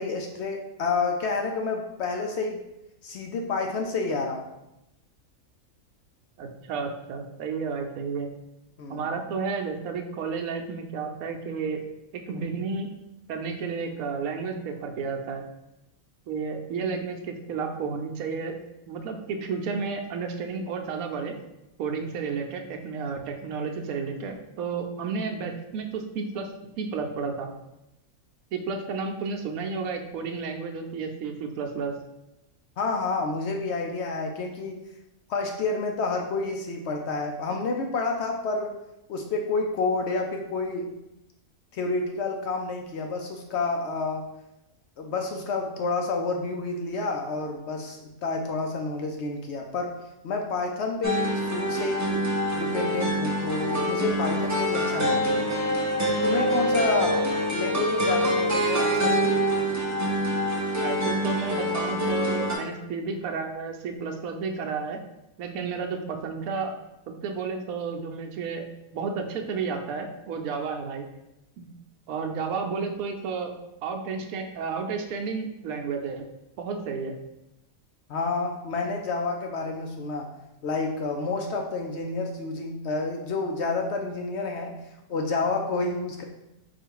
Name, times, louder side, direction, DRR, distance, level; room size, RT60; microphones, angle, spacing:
voice 1, 0.0-2.6 3.0-4.5 8.8-9.0 32.8-34.9 35.3-38.8 39.1-41.0 41.7-44.3 45.0-52.3 52.5-55.5 56.2-59.3 78.1-80.3 80.6-86.2, left 3 dB, 65° left, 3 dB, 0.7 m, -29 dB
voice 2, 6.4-8.3 8.9-11.8 12.1-12.9 13.3-15.4 16.3-18.5 18.9-21.4 21.8-26.5 26.8-27.5 28.5-31.9 57.0-57.1 60.8-65.0 65.4-66.7 67.2-68.6 68.9-71.1 71.6-71.7 72.1-73.5 73.8-76.2 76.6-77.1, right 5 dB, 80° right, 3 dB, 1.1 m, -32 dB
sound 1, 51.0-62.5, equal, 25° right, 0.4 m, -25 dB
4.7 x 2.5 x 4.6 m, 0.91 s
omnidirectional pair, 1.5 m